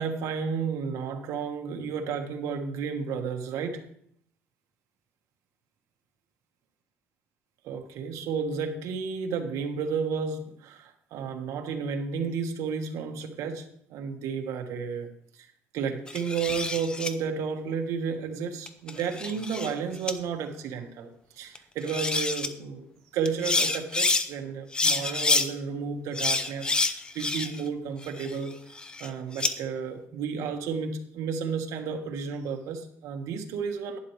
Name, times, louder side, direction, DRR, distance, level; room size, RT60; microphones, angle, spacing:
voice 1, 0.0-3.8 7.6-15.5 15.7-21.1 21.4-28.6 29.0-34.0, right 6 dB, 75° right, 4 dB, 1.4 m, -32 dB
sound 1, 16.1-17.1 18.7-19.7 20.1-20.2 21.6-21.7 21.9-22.5 23.3-24.3 24.7-25.5 26.2-27.7 28.0-29.5, left 3 dB, 15° left, 0.6 m, -27 dB
11.5 x 10.0 x 3.2 m, 0.69 s
cardioid pair, 155°, 5 cm